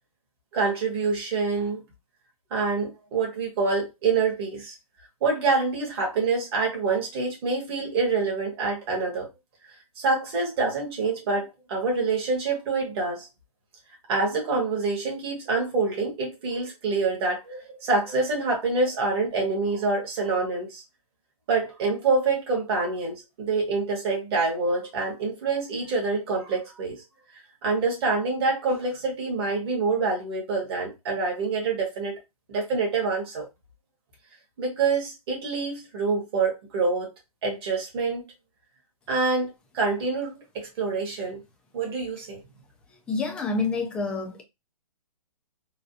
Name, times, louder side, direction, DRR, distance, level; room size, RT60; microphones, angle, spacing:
voice 1, 0.5-1.8 2.5-4.7 5.2-9.3 10.0-13.3 14.1-20.8 21.5-27.0 27.6-32.2 32.5-33.5 34.6-37.1 37.4-38.2 39.1-41.4 41.7-42.4, right 4 dB, 40° right, 1.7 m, -26 dB
voice 2, 43.1-44.4, left 3 dB, 5° left, 0.3 m, -27 dB
3.9 x 2.3 x 2.6 m
hypercardioid pair, 150°, 19 cm